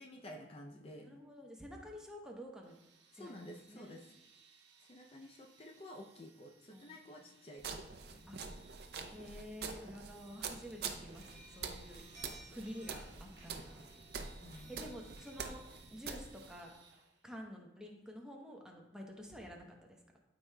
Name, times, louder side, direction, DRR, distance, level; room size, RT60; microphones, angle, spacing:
voice 1, 0.0-1.1 3.1-4.2 4.9-7.8 8.1-8.3 14.4-14.7, left 1 dB, 35° left, 1 dB, 0.5 m, -51 dB
voice 2, 1.0-2.8 3.1-4.0 6.7-7.3 8.3-8.4 9.1-13.9 14.7-15.6 15.9-16.7 17.2-20.0, equal, 5° right, 0 dB, 0.8 m, -50 dB
sound 1, 2.6-17.4, right 5 dB, 90° right, 1.0 m, -64 dB
sound 2, 7.6-16.6, right 5 dB, 60° right, 0.6 m, -46 dB
sound 3, 11.1-16.1, right 1 dB, 25° right, 2.7 m, -59 dB
12.5 x 4.8 x 2.2 m, 0.91 s
head